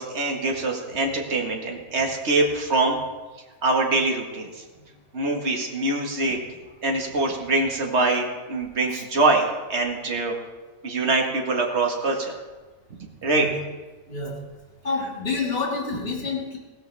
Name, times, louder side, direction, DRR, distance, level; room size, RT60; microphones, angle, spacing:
voice 1, 0.0-3.0 3.6-4.6 5.1-6.4 6.8-10.3 10.8-12.4 13.0-13.5, right 2 dB, 65° right, 1 dB, 1.9 m, -24 dB
voice 2, 14.1-14.4 14.8-16.6, left 4 dB, 50° left, -2 dB, 2.6 m, -28 dB
17.0 x 13.5 x 3.4 m, 1.3 s
omnidirectional pair, 1.3 m